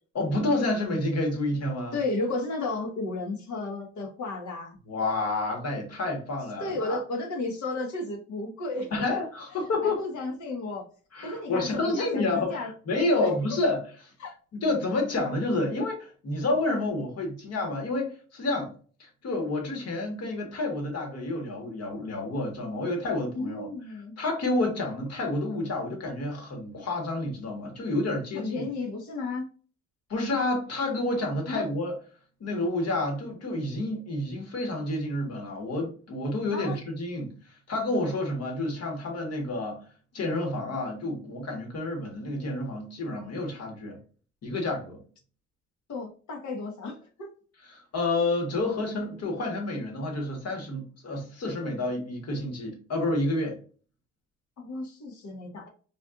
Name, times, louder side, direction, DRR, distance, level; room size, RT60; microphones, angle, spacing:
voice 1, 0.1-2.0 4.9-7.0 8.9-10.0 11.1-13.8 14.5-18.7 19.0-23.7 24.2-28.7 30.1-31.9 32.4-37.3 37.7-39.8 40.1-44.0 44.4-45.0 47.6-53.6, left 2 dB, 55° left, 1.6 m, -29 dB
voice 2, 1.9-4.8 6.6-8.9 9.8-10.8 11.2-12.7 13.2-13.6 14.2-14.3 23.3-24.2 28.3-29.5 31.5-31.6 36.5-36.8 45.9-47.3 54.6-55.7, left 2 dB, 70° left, 1.3 m, -33 dB
4.2 x 2.5 x 2.5 m
cardioid pair, 90°, 30 cm